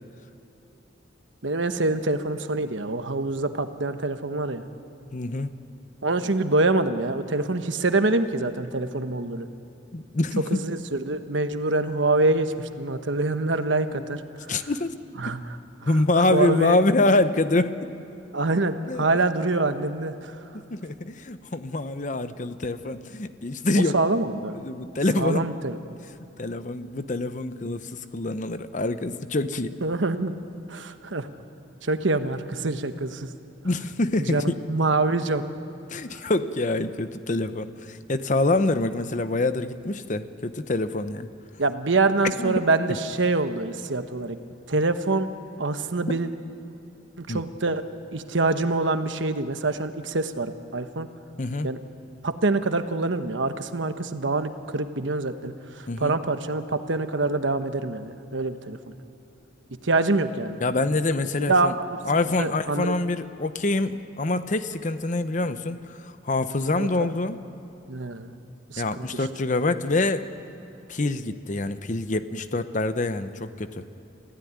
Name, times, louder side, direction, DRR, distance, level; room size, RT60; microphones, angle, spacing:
voice 1, 1.4-4.6 6.0-9.5 10.5-14.2 14.6-14.7 15.2-15.4 15.8-16.8 18.3-20.4 23.8-24.6 25.2-25.8 29.8-30.4 30.7-31.3 31.8-33.3 34.2-35.4 41.6-44.4 44.7-45.3 45.6-46.3 47.2-47.8 48.1-51.1 51.6-51.8 52.2-58.8 59.8-60.6 61.4-62.0 62.4-62.9 66.8-67.1 67.9-68.3 68.7-69.0, right 2 dB, 75° right, 9 dB, 1.2 m, -25 dB
voice 2, 5.1-5.5 9.9-10.4 13.9-14.0 14.5-14.9 15.2-15.3 15.9-17.8 18.9-19.0 20.7-24.0 24.5-25.5 26.4-29.8 33.6-34.6 35.9-41.3 42.4-42.6 47.3-47.4 51.4-51.7 55.9-56.2 60.6-61.7 62.1-67.4 68.8-70.3 70.9-73.8, left 2 dB, 40° left, 11 dB, 0.8 m, -25 dB
27.0 x 15.5 x 9.6 m, 3.0 s
head